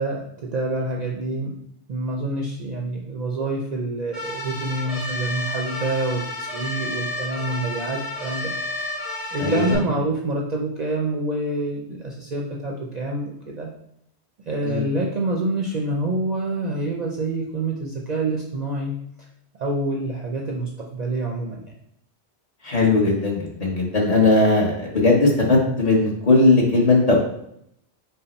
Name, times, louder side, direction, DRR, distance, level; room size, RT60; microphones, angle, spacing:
voice 1, 0.0-1.6 1.9-8.5 8.8-9.0 9.3-13.7 14.5-19.0 19.6-21.7, right 2 dB, 50° right, -1 dB, 0.5 m, -27 dB
sound 1, 4.1-9.7, left 2 dB, 60° left, 1.4 m, -31 dB
voice 2, 9.4-9.8 14.6-14.8 22.6-27.2, left 3 dB, 35° left, -2 dB, 1.0 m, -18 dB
5.4 x 2.0 x 4.1 m, 0.74 s
omnidirectional pair, 1.1 m